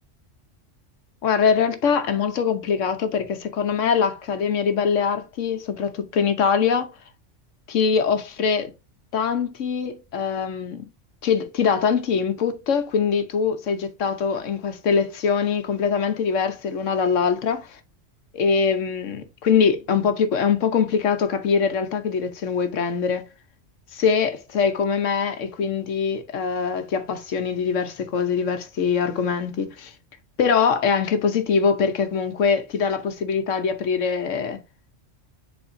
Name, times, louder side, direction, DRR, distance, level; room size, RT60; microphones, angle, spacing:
voice 1, 1.2-6.9 7.7-8.7 9.1-10.9 11.2-17.8 18.3-23.3 23.9-29.9 30.4-34.6, left 6 dB, 80° left, 1.3 m, -23 dB
9.7 x 4.1 x 2.6 m
omnidirectional pair, 1.3 m